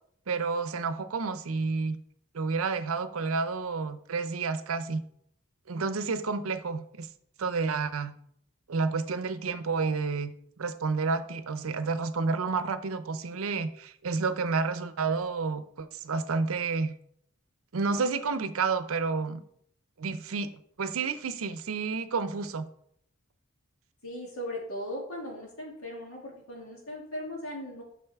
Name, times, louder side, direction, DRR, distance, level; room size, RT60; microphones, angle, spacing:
voice 1, 0.3-2.0 2.3-5.0 5.7-7.1 7.4-8.2 8.7-10.3 10.6-17.0 17.7-19.4 20.0-22.7, right 4 dB, 80° right, 12 dB, 0.6 m, -30 dB
voice 2, 24.0-27.8, left 1 dB, 85° left, -2 dB, 2.7 m, -38 dB
9.0 x 6.1 x 3.5 m, 0.68 s
head